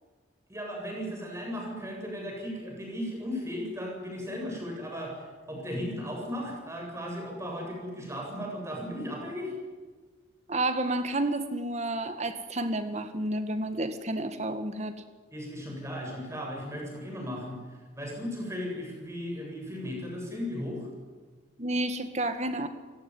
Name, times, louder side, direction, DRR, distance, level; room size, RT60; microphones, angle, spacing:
voice 1, 0.5-9.5 15.3-20.9, equal, 15° right, 0 dB, 7.8 m, -36 dB
voice 2, 10.5-14.9 21.6-22.7, right 1 dB, 35° right, 9 dB, 1.8 m, -30 dB
30.0 x 18.0 x 9.8 m, 1.4 s
head